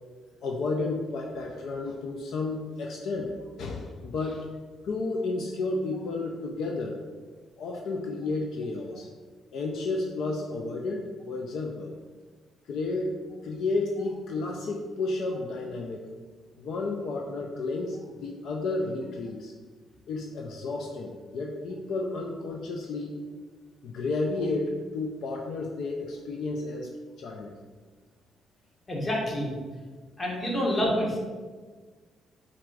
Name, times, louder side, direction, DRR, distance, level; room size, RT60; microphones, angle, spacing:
voice 1, 0.4-4.5 4.8-7.0 7.6-9.1 9.5-11.9 12.7-13.1 13.4-16.1 16.6-19.5 20.1-23.2 23.8-26.9 27.2-27.5, left 3 dB, 75° left, 1 dB, 0.4 m, -32 dB
voice 2, 28.9-29.5 30.2-31.2, equal, 30° left, -3 dB, 1.3 m, -27 dB
4.2 x 2.5 x 4.6 m, 1.4 s
cardioid pair, 90°, 0 cm